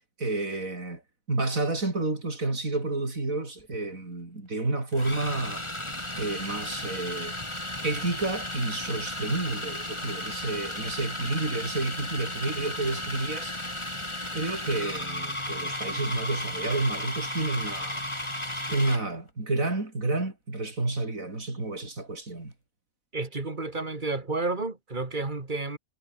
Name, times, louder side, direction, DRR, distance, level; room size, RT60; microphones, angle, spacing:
voice 1, 0.2-1.0 1.3-5.6 6.2-7.4 7.8-13.6 14.3-18.0 18.7-22.5, right 2 dB, 70° right, 5.2 m, -30 dB
sound 1, 3.6-3.8 4.9-19.1, left 1 dB, 20° left, 4.4 m, -34 dB
voice 2, 23.1-25.8, right 3 dB, 35° right, 2.6 m, -31 dB
omnidirectional pair, 1.5 m